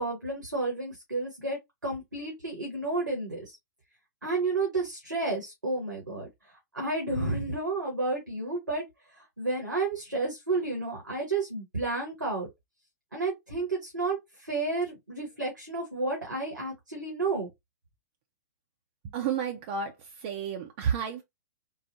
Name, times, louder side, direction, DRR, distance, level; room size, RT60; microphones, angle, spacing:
voice 1, 0.0-3.6 4.2-8.8 9.1-12.5 13.1-17.5, right 3 dB, 90° right, 1.4 m, -31 dB
voice 2, 19.0-21.2, right 7 dB, 40° right, 0.6 m, -31 dB
3.9 x 2.0 x 2.7 m
figure-of-eight pair, 115°, 10 cm